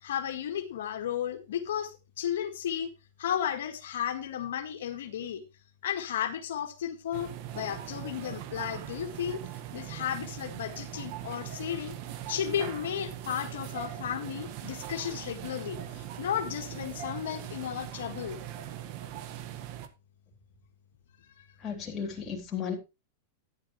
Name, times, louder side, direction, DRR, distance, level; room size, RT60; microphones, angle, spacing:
voice 1, 0.0-2.9 3.2-5.4 5.8-9.4 9.7-11.9 12.3-18.4 21.4-21.5, left 9 dB, 80° left, 1.8 m, -34 dB
sound 1, 7.1-19.9, right 11 dB, 50° right, 1.5 m, -41 dB
voice 2, 21.6-22.8, left 7 dB, 25° left, 3.7 m, -34 dB
12.0 x 10.5 x 3.1 m
supercardioid pair, 130°, 0 cm